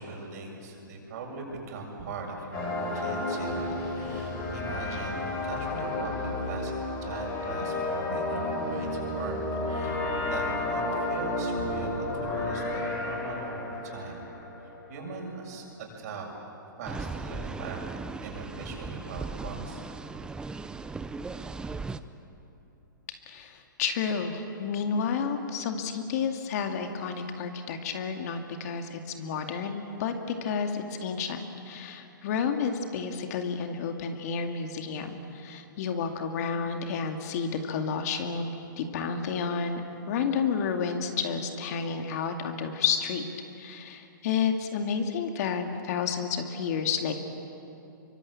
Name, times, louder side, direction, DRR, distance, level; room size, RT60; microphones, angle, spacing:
voice 1, 0.0-6.8 7.0-9.4 9.7-14.2 14.9-16.3 16.6-19.8, right 3 dB, 50° right, 0 dB, 7.3 m, -40 dB
sound 1, 2.5-15.1, left 2 dB, 30° left, 6.5 m, -32 dB
sound 2, 16.8-22.0, right 3 dB, 5° right, 0.7 m, -37 dB
voice 2, 23.1-30.1 30.4-43.3 43.6-47.1, left 6 dB, 50° left, 5 dB, 2.3 m, -31 dB
25.0 x 24.0 x 8.7 m, 2.9 s
hypercardioid pair, 130°, 11 cm